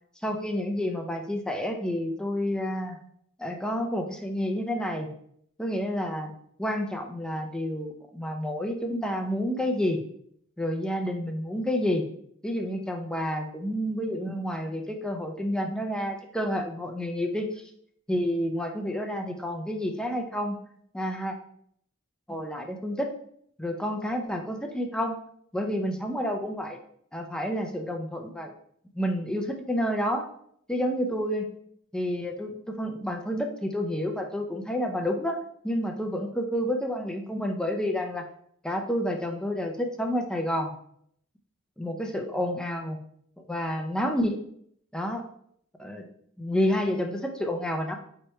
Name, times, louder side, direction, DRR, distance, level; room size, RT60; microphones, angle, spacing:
voice 1, 0.2-3.0 3.4-5.1 5.6-6.3 6.6-10.0 10.6-12.0 12.4-17.6 18.1-20.6 20.9-21.3 22.3-23.1 23.6-25.2 25.5-26.8 27.1-28.5 28.9-30.3 30.7-31.5 31.9-35.4 35.6-38.2 38.6-40.7 41.8-43.0 43.4-44.4 44.9-45.3 45.8-46.1 46.4-48.0, equal, 5° left, 3 dB, 0.4 m, -29 dB
4.5 x 3.0 x 3.1 m, 0.67 s
head